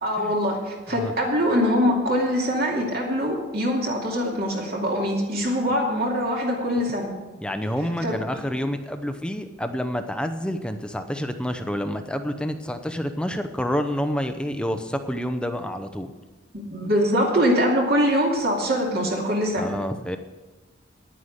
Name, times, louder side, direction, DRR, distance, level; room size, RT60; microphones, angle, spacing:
voice 1, 0.0-7.1 8.0-8.2 16.5-19.7, equal, 50° right, -1 dB, 2.6 m, -23 dB
voice 2, 7.4-16.1 19.6-20.2, equal, 5° left, 7 dB, 0.7 m, -28 dB
10.5 x 9.5 x 6.5 m, 1.2 s
head